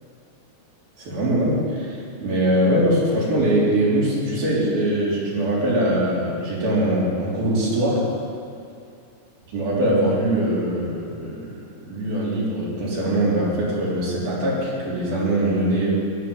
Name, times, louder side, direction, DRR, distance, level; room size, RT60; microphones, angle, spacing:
voice 1, 1.0-8.0 9.5-11.5 11.9-15.9, right 1 dB, 80° right, -6 dB, 5.8 m, -22 dB
16.0 x 11.0 x 7.3 m, 2.4 s
omnidirectional pair, 4.2 m